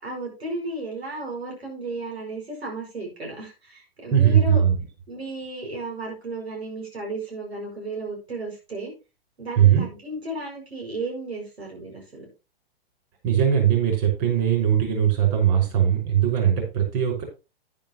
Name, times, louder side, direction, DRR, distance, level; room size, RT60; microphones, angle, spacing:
voice 1, 0.0-4.6 5.1-8.9 9.4-12.3, right 2 dB, 90° right, 0 dB, 6.6 m, -34 dB
voice 2, 4.1-4.8 9.6-9.9 13.2-17.2, right 9 dB, 40° right, 2 dB, 5.7 m, -20 dB
10.5 x 10.5 x 3.1 m, 0.29 s
hypercardioid pair, 125°, 31 cm